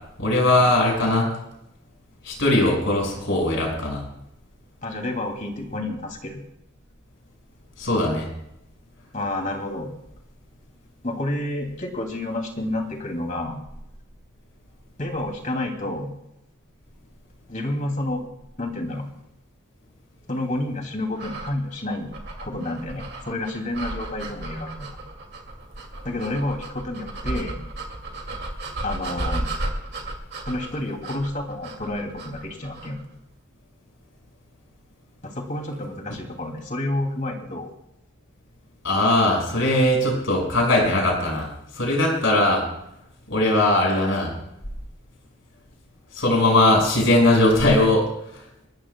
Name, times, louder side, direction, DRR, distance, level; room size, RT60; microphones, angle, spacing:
voice 1, 0.2-1.3 2.2-4.1 7.8-8.3 38.8-42.6 43.3-44.3 46.1-48.1 48.3-48.4, left 1 dB, 65° left, 0 dB, 5.9 m, -20 dB
voice 2, 4.8-6.4 9.1-9.9 11.0-13.6 15.0-16.1 17.5-18.2 18.6-19.0 20.3-22.1 22.4-24.9 26.0-27.6 28.8-29.5 30.5-33.0 35.2-37.7, left 1 dB, 35° left, 2 dB, 2.8 m, -29 dB
sound 1, 21.1-33.0, right 1 dB, 50° right, 2.5 m, -34 dB
29.5 x 13.5 x 2.3 m, 0.84 s
head